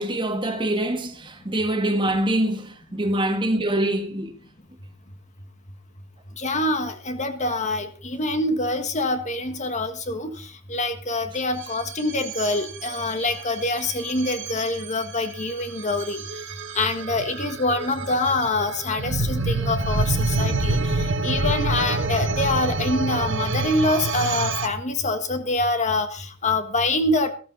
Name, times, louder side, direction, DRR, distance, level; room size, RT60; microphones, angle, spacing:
voice 1, 0.0-4.3, right 1 dB, 20° right, 1.6 m, -24 dB
voice 2, 6.4-16.2 16.7-27.3, left 2 dB, 35° left, 1.5 m, -25 dB
sound 1, 11.6-24.7, right 3 dB, 55° right, 1.3 m, -27 dB
14.0 x 14.0 x 4.0 m
head